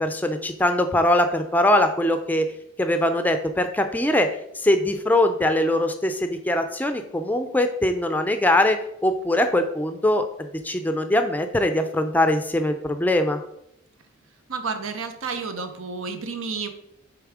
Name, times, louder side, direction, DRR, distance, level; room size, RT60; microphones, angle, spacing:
voice 1, 0.0-2.4 2.8-4.3 4.6-8.8 9.0-13.4, left 1 dB, 10° left, 7 dB, 0.4 m, -22 dB
voice 2, 14.5-16.7, right 5 dB, 85° right, 7 dB, 0.8 m, -30 dB
6.9 x 3.6 x 4.8 m, 0.78 s
head